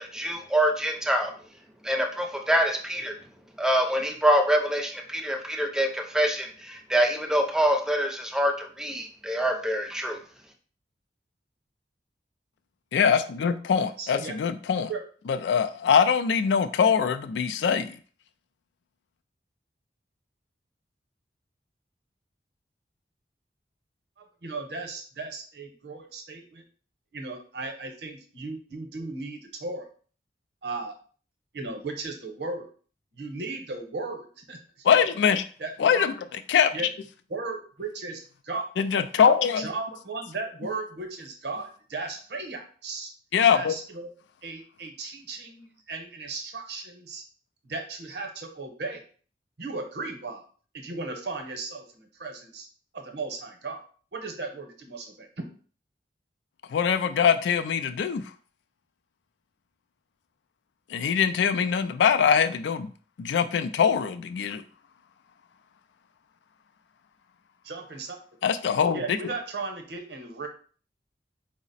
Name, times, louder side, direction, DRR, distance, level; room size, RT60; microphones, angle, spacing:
voice 1, 0.0-1.3 1.8-3.1 3.6-10.2, right 1 dB, 5° right, 3 dB, 0.5 m, -25 dB
voice 2, 12.9-14.9 15.3-17.9 34.8-35.4 35.8-36.1 36.5-36.7 38.8-39.7 43.3-43.7 56.7-58.2 60.9-62.9 63.2-64.6 68.4-69.0, left 7 dB, 80° left, 11 dB, 0.3 m, -23 dB
voice 3, 14.0-14.3 14.9-15.0 24.2-26.6 27.1-29.9 30.6-30.9 31.5-32.7 33.1-35.1 35.6-36.1 36.7-36.9 37.3-38.6 39.6-43.1 43.5-44.1 44.4-47.2 47.6-49.0 49.6-50.4 50.7-52.7 52.9-53.8 54.1-55.3 67.6-68.2 68.9-70.5, right 3 dB, 65° right, 4 dB, 0.8 m, -36 dB
4.8 x 2.1 x 4.0 m, 0.42 s
head